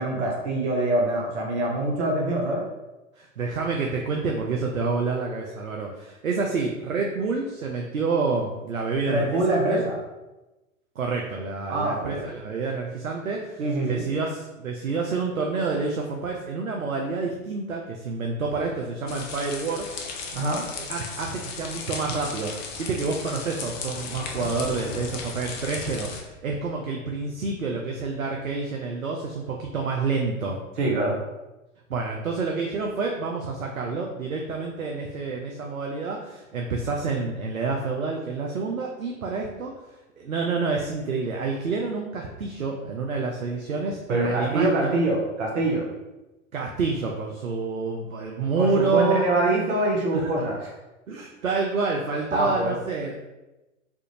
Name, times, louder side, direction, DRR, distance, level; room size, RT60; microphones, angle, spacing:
voice 1, 0.0-2.6 9.1-10.0 11.7-12.3 13.6-14.0 20.3-20.6 30.8-31.1 44.1-45.8 48.6-50.7 52.3-52.7, right 2 dB, 60° right, -2 dB, 0.8 m, -24 dB
voice 2, 3.2-9.8 11.0-19.9 20.9-30.6 31.9-39.7 40.2-45.0 46.5-49.3 50.1-50.3 51.1-53.3, right 4 dB, 90° right, 0 dB, 0.5 m, -28 dB
sound 1, 19.1-26.2, left 5 dB, 35° left, 0.5 m, -35 dB
3.5 x 2.4 x 2.8 m, 1.0 s
figure-of-eight pair, 100°, 39 cm